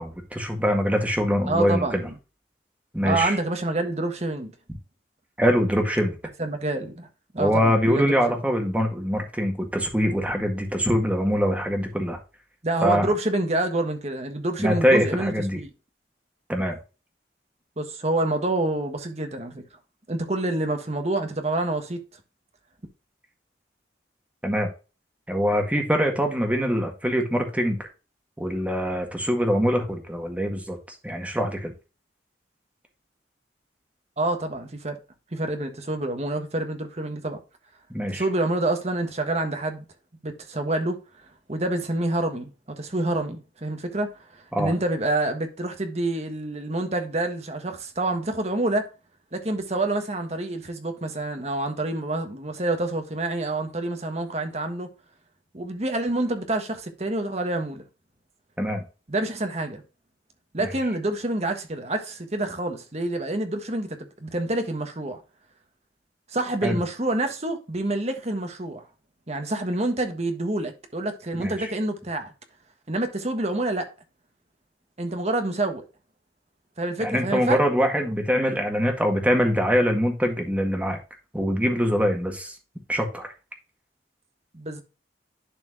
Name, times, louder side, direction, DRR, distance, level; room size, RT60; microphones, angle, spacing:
voice 1, 0.0-2.0 2.9-3.4 5.4-6.2 7.4-12.2 12.8-13.1 14.6-15.6 16.5-16.8 24.4-24.7 25.3-27.8 28.4-31.7 37.9-38.3 44.5-44.7 58.6-58.8 60.6-60.7 66.6-66.8 71.4-71.7 77.0-81.0 81.3-82.6 82.9-83.3, equal, 10° right, 1.8 m, -23 dB
voice 2, 1.5-2.1 3.0-4.5 6.4-7.1 7.3-8.2 12.6-15.7 17.8-19.6 20.1-22.0 34.2-35.0 35.3-37.4 38.1-39.8 40.2-41.0 41.5-42.5 42.8-48.9 49.3-54.9 55.5-57.8 59.1-59.8 60.5-65.2 66.3-68.8 69.3-72.3 72.9-73.9 75.0-75.8 76.8-77.6 84.5-84.8, right 2 dB, 40° right, 1.4 m, -27 dB
11.5 x 4.4 x 2.7 m
head